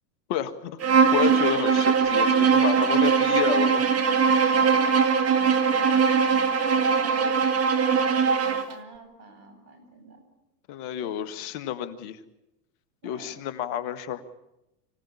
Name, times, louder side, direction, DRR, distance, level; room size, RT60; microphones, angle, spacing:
voice 1, 0.3-0.8 1.1-3.8 10.7-12.2 13.0-14.2, left 10 dB, 55° left, 10 dB, 1.9 m, -30 dB
Bowed string instrument, 0.8-8.7, right 6 dB, 30° right, 2.1 m, -21 dB
voice 2, 4.4-7.5 7.7-10.2 13.0-13.5, right 4 dB, 75° right, 7 dB, 7.6 m, -45 dB
25.5 x 17.0 x 8.5 m, 0.91 s
hypercardioid pair, 100°, 48 cm